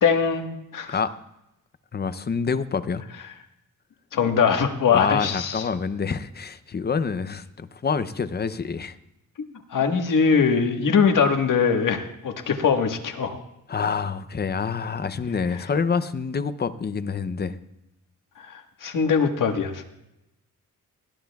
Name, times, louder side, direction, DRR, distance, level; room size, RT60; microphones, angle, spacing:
voice 1, 0.0-1.0 4.1-5.7 9.7-13.4 18.4-19.8, left 6 dB, 70° left, 4 dB, 1.5 m, -22 dB
voice 2, 1.9-3.0 4.9-8.9 13.7-17.6, left 5 dB, 30° left, 13 dB, 0.6 m, -27 dB
20.5 x 15.0 x 2.3 m, 0.88 s
wide cardioid pair, 135°, 33 cm